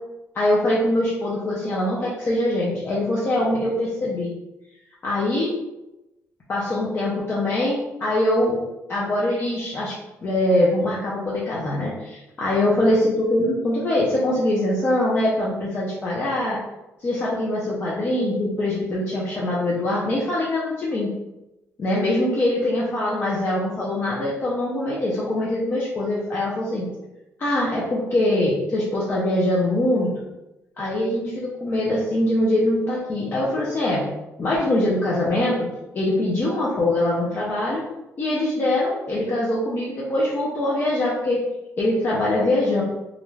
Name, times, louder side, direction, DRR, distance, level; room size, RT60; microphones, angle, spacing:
voice 1, 0.3-4.3 5.0-5.5 6.5-8.6 8.9-9.9 10.2-16.6 17.0-21.1 21.8-26.9 27.4-30.2 30.8-34.0 34.4-35.7 35.9-37.8 38.2-41.4 41.8-42.8, left 1 dB, 40° left, -6 dB, 0.6 m, -23 dB
2.4 x 2.1 x 3.1 m, 0.96 s
cardioid pair, 105°, 6 cm